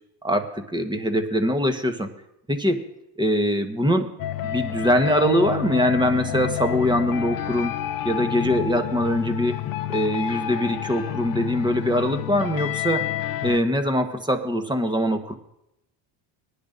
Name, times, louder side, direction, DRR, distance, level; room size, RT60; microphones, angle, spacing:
voice 1, 0.2-2.1 2.5-2.8 3.2-4.1 4.4-7.7 8.0-9.6 9.9-13.1 13.4-15.3, equal, 10° right, 6 dB, 1.2 m, -23 dB
sound 1, 4.2-13.6, left 12 dB, 45° left, 0.7 m, -29 dB
20.0 x 10.0 x 2.6 m, 0.82 s
supercardioid pair, 90°, 47 cm